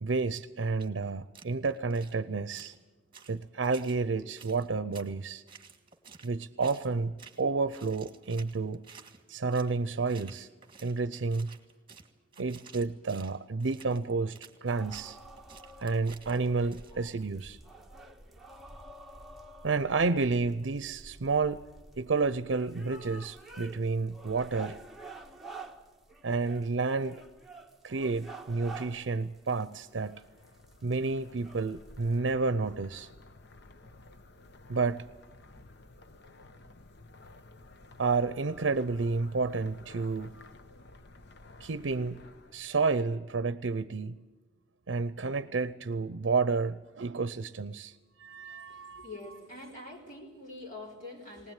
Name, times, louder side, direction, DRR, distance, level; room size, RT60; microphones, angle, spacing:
voice 1, 0.0-2.7 3.3-5.4 6.2-8.9 9.3-10.5 10.8-11.5 12.4-15.2 15.8-17.6 19.6-21.6 22.0-24.8 26.2-27.2 27.8-30.2 30.8-33.1 34.7-35.0 38.0-40.4 41.6-42.2 42.5-44.2 44.9-49.1, right 4 dB, 80° right, 13 dB, 0.6 m, -30 dB
sound 1, 0.8-0.9 1.3-2.2 2.5-2.8 3.1-4.0 4.4-5.1 5.5-6.3 6.6-6.9 7.2-7.5 7.7-9.8 10.1-17.2, right 6 dB, 30° right, 1.7 m, -53 dB
sound 2, 14.6-32.2, right 2 dB, ahead, 1.5 m, -49 dB
sound 3, 29.4-42.8, left 2 dB, 65° left, 1.0 m, -54 dB
voice 2, 48.6-51.5, left 2 dB, 45° left, -3 dB, 4.0 m, -45 dB
20.0 x 19.5 x 9.0 m, 1.2 s
head